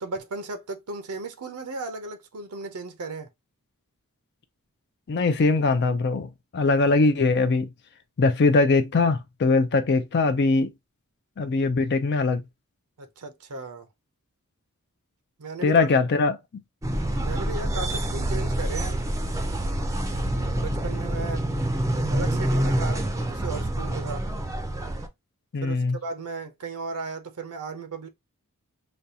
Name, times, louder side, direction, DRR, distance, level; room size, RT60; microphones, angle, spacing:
voice 1, 0.0-3.3 13.0-13.9 15.4-15.9 17.2-19.0 20.6-21.5 22.1-24.3 25.6-28.1, right 3 dB, 75° right, 0.6 m, -35 dB
voice 2, 5.1-7.7 8.2-10.7 11.4-12.4 15.6-16.4 25.5-26.0, left 3 dB, 50° left, 0.4 m, -21 dB
sound 1, 16.8-25.1, right 1 dB, 15° right, 0.5 m, -27 dB
5.1 x 2.3 x 2.7 m
head